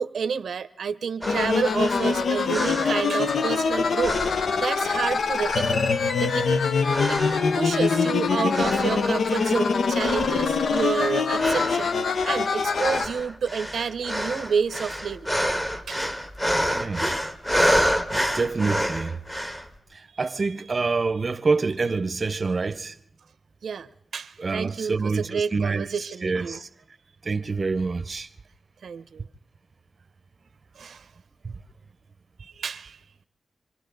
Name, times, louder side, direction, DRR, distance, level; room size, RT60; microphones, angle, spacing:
voice 1, 0.0-7.2 7.5-15.3 15.9-16.1 17.6-17.8 23.6-26.6 28.8-29.3 30.8-31.1 32.4-33.0, right 6 dB, 75° right, 0.7 m, -30 dB
fall-into-computer, 1.2-13.0, left 5 dB, 65° left, 0.7 m, -24 dB
sound 1, 1.2-3.7 4.0-5.1 5.4-7.5 7.8-8.2 8.5-9.7 10.0-19.7, equal, 10° left, 1.3 m, -29 dB
voice 2, 16.7-17.1 18.1-19.2 19.9-22.9 24.4-25.9 26.2-26.7 27.2-28.3 31.4-31.6, right 4 dB, 35° right, 0.7 m, -26 dB
26.5 x 25.5 x 3.9 m
wide cardioid pair, 165°, 0 cm